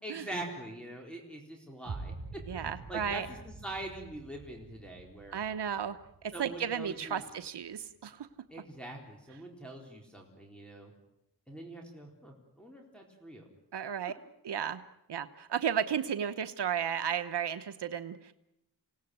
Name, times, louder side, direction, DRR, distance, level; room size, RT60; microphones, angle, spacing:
voice 1, 0.0-5.4 6.3-7.2 8.5-10.9 11.5-13.4, right 1 dB, 5° left, -2 dB, 4.1 m, -44 dB
sound 1, 1.9-7.9, right 3 dB, 45° right, 5.9 m, -47 dB
voice 2, 2.5-3.3 5.3-6.0 6.2-8.3 13.7-14.1 14.4-14.8 15.1-18.3, right 8 dB, 85° right, 9 dB, 1.1 m, -34 dB
28.0 x 18.0 x 9.4 m, 0.86 s
wide cardioid pair, 125°, 40 cm